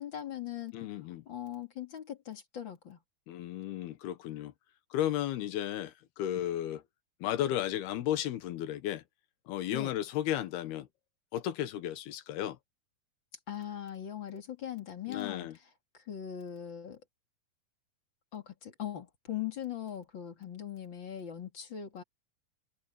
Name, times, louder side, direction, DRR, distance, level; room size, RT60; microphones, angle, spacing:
voice 1, 0.0-0.7 1.3-3.0 9.7-9.9 13.5-15.5 16.1-17.0 18.3-22.0, left 10 dB, 35° left, 2.4 m, -40 dB
voice 2, 0.7-1.2 3.3-4.5 4.9-6.8 7.2-9.0 9.5-10.9 11.3-12.6 15.1-15.6, left 12 dB, 85° left, 3.3 m, -34 dB
omnidirectional pair, 4.4 m